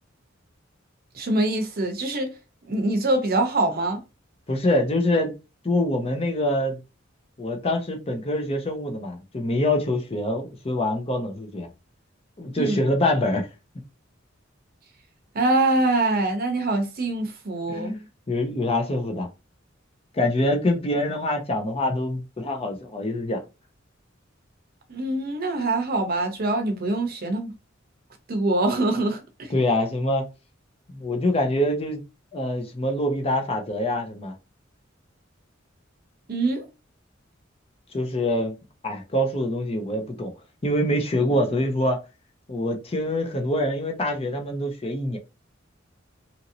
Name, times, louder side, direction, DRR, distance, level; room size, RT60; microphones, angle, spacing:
voice 1, 1.1-2.3 2.7-4.0 12.6-12.8 15.3-18.0 24.9-27.5 28.3-29.5 36.3-36.7, right 2 dB, 50° right, 0.7 m, -24 dB
voice 2, 4.5-5.3 5.6-6.8 7.4-11.7 12.4-13.5 17.7-19.3 20.1-23.4 29.5-30.2 30.9-32.0 32.3-34.3 37.9-38.5 38.8-40.3 40.6-42.0 42.5-45.2, left 1 dB, 30° left, 0.6 m, -25 dB
2.9 x 2.7 x 2.6 m
head